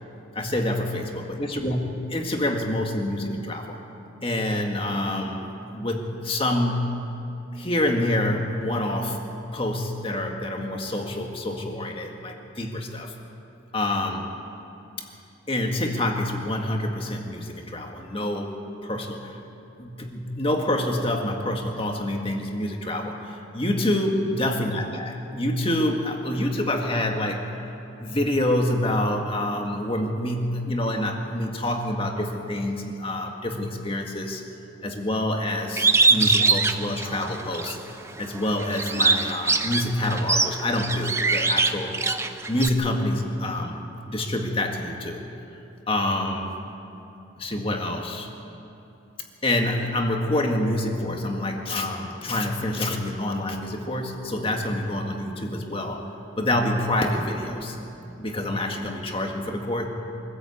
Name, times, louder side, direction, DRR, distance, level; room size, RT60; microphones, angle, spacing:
voice 1, 0.3-3.8 4.2-6.9 7.5-9.2 9.5-13.1 13.7-14.3 15.5-18.5 18.8-19.4 19.8-27.5 28.0-34.4 34.8-37.8 38.2-41.9 42.5-45.2 45.9-46.6 47.4-48.3 49.4-56.1 56.4-59.9, left 1 dB, 25° left, 2 dB, 1.9 m, -27 dB
Bird, 35.8-37.7 38.2-42.7, right 4 dB, 15° right, 0.6 m, -22 dB
24.5 x 14.5 x 8.4 m, 2.8 s
head